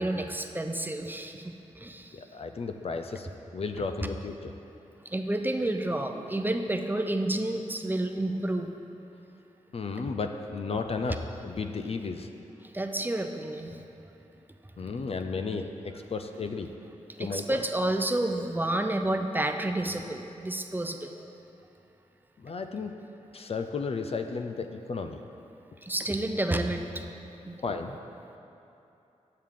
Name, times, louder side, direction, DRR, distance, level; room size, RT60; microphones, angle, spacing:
voice 1, 0.0-2.2 4.0-4.1 5.0-8.7 12.6-13.8 14.8-15.1 17.2-21.1 25.8-27.0 27.4-27.6, right 1 dB, 15° right, 5 dB, 0.5 m, -30 dB
voice 2, 2.1-3.3 3.5-4.5 9.7-12.3 13.7-13.8 14.8-16.7 17.2-17.6 22.4-22.9 23.3-25.2 27.6-28.0, left 4 dB, 50° left, 6 dB, 0.4 m, -34 dB
7.5 x 6.4 x 3.6 m, 2.8 s
cardioid pair, 55°, 13 cm